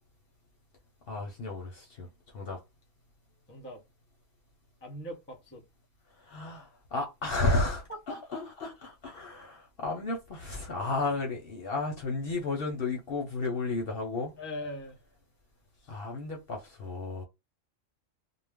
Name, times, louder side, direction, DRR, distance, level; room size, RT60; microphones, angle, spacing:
voice 1, 1.1-2.6 6.2-14.3 15.9-17.2, left 3 dB, 55° left, 0.7 m, -33 dB
voice 2, 3.5-3.8 4.8-5.6 7.9-8.2 14.4-15.0 15.7-16.0, left 1 dB, 15° left, 0.4 m, -41 dB
2.3 x 2.1 x 3.4 m
omnidirectional pair, 1.4 m